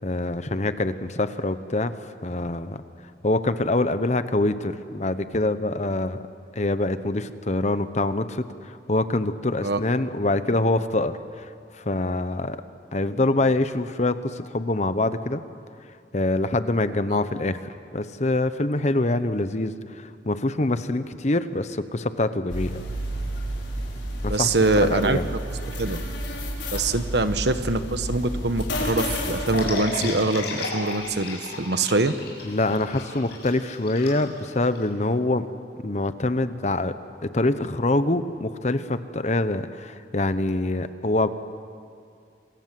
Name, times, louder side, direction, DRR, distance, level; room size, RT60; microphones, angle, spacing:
voice 1, 0.0-2.8 3.2-6.2 6.5-12.6 12.9-15.4 16.1-22.8 24.2-24.5 24.8-25.3 32.4-35.5 35.8-37.0 37.2-41.3, left 2 dB, 40° left, 12 dB, 0.9 m, -25 dB
sound 1, 22.5-29.7, equal, 80° left, 5.1 m, -30 dB
voice 2, 24.3-25.2 25.8-26.0 26.7-32.1, right 2 dB, 65° right, 10 dB, 1.2 m, -24 dB
sound 2, 29.5-34.9, left 3 dB, 60° left, 6.1 m, -33 dB
27.0 x 23.0 x 7.6 m, 2.3 s
head